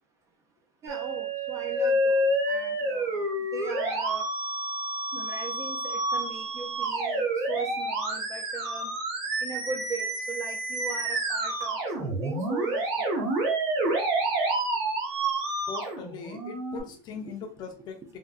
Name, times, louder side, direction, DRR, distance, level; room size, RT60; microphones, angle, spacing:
voice 1, 0.8-3.3 3.5-4.2 5.1-8.9 9.4-13.3 16.9-17.0 17.3-17.4, right 4 dB, 20° right, 0.4 m, -39 dB
Musical instrument, 0.9-16.8, right 1 dB, 85° right, 1.2 m, -29 dB
voice 2, 15.7-18.2, left 6 dB, 35° left, 0.5 m, -40 dB
3.5 x 2.2 x 2.3 m
cardioid pair, 175°, 13 cm